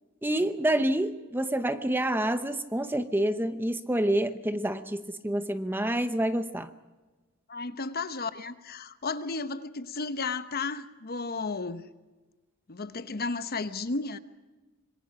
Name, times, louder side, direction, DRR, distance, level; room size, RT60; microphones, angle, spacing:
voice 1, 0.2-6.7, right 1 dB, 10° right, 0.8 m, -28 dB
voice 2, 7.5-11.9 12.7-14.2, left 4 dB, 45° left, 1.0 m, -33 dB
26.0 x 22.0 x 5.9 m
head